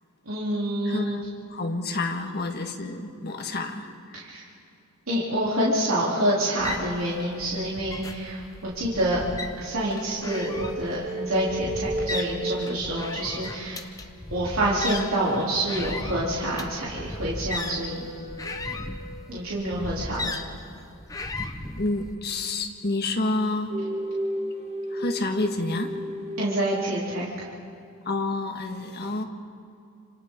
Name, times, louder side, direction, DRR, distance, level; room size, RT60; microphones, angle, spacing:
voice 1, 0.2-1.2 4.1-4.4 5.1-9.2 9.6-13.8 14.3-18.1 19.3-20.3 26.4-27.5, right 1 dB, 65° right, -7 dB, 3.2 m, -27 dB
voice 2, 0.8-1.2 1.5-4.2 21.8-23.8 24.9-26.0 28.0-29.2, left 2 dB, 45° left, 3 dB, 1.6 m, -29 dB
sound 1, 6.6-22.1, left 2 dB, 15° left, 0.9 m, -36 dB
sound 2, 10.3-13.5 17.0-19.6 23.7-27.5, right 1 dB, 30° right, 1.7 m, -34 dB
29.0 x 27.0 x 3.8 m, 2.4 s
head